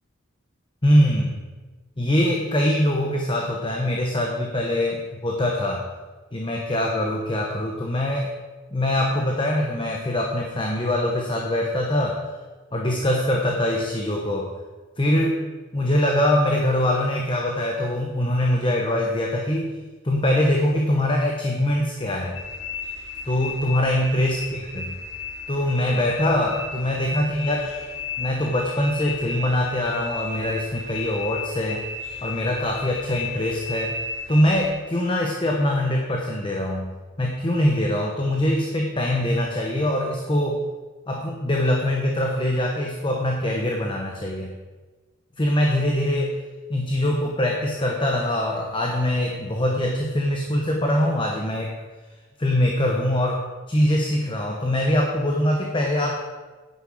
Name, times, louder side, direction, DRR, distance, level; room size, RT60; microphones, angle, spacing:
voice 1, 0.8-1.4 2.0-5.9 6.3-8.3 8.7-12.3 12.7-14.5 15.0-15.4 15.7-19.8 20.0-22.4 23.2-24.8 25.5-27.8 28.2-31.8 32.2-34.0 34.3-40.6 41.1-44.5 45.4-46.4 46.7-51.8 52.4-56.2, left 1 dB, 25° left, 0 dB, 1.0 m, -23 dB
sound 1, 22.3-34.7, left 4 dB, 65° left, 2.2 m, -34 dB
9.9 x 9.7 x 4.9 m, 1.3 s
head